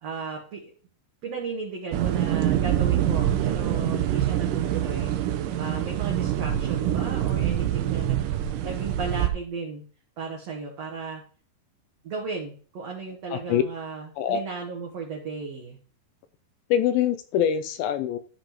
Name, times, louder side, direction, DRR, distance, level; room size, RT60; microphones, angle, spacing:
voice 1, 0.0-0.7 1.2-5.1 5.6-8.3 8.6-9.8 10.2-11.2 12.0-15.8, right 5 dB, 65° right, -1 dB, 1.6 m, -35 dB
sound 1, 1.9-9.3, right 11 dB, 90° right, 1.9 m, -25 dB
voice 2, 13.3-13.6 14.2-14.4 16.7-18.2, left 9 dB, 85° left, 10 dB, 2.1 m, -24 dB
13.0 x 5.2 x 3.0 m, 0.42 s
omnidirectional pair, 4.6 m